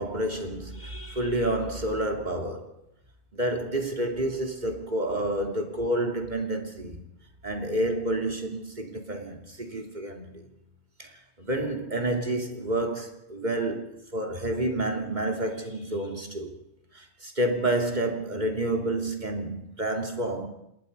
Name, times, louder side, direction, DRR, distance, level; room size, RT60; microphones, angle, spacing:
voice 1, 0.0-2.7 3.3-7.0 7.4-10.4 11.0-11.1 11.4-16.5 16.9-20.5, right 1 dB, 30° right, 3.0 m, -29 dB
26.5 x 21.0 x 5.4 m
omnidirectional pair, 1.5 m